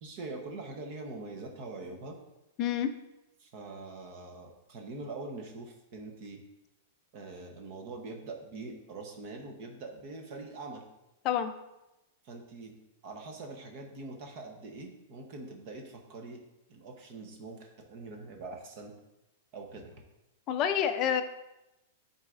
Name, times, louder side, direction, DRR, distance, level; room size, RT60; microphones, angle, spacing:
voice 1, 0.0-2.2 3.4-6.4 7.1-10.8 12.2-12.7 13.0-16.4 16.7-18.9 19.5-20.0, right 3 dB, 35° right, 3 dB, 0.9 m, -43 dB
voice 2, 2.6-2.9 11.2-11.5 20.5-21.2, left 9 dB, 25° left, 7 dB, 0.4 m, -27 dB
11.0 x 4.1 x 2.5 m, 0.96 s
supercardioid pair, 180°, 0 cm